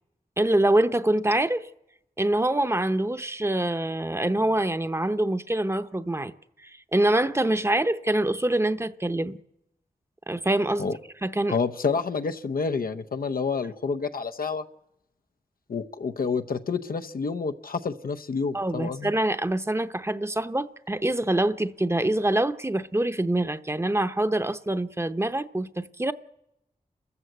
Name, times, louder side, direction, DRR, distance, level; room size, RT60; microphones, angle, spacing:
voice 1, 0.4-1.7 2.2-6.3 6.6-9.4 10.3-10.9 11.2-11.6 18.5-26.1, right 1 dB, 20° right, 0.8 m, -25 dB
voice 2, 11.5-14.6 15.7-19.1, left 5 dB, 90° left, 0.8 m, -28 dB
30.0 x 14.0 x 7.9 m
wide cardioid pair, 95°, 15 cm